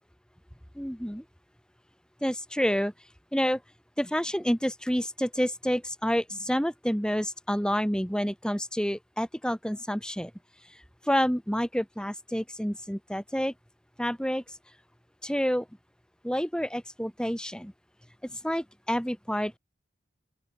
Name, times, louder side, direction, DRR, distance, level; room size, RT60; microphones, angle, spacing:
voice 1, 0.8-1.2 2.2-2.9 3.3-3.6 4.0-10.3 10.7-10.8 11.0-13.5 14.0-14.4 15.2-15.7 16.2-17.7 18.2-19.6, equal, 5° left, 7.0 m, -28 dB
open air
head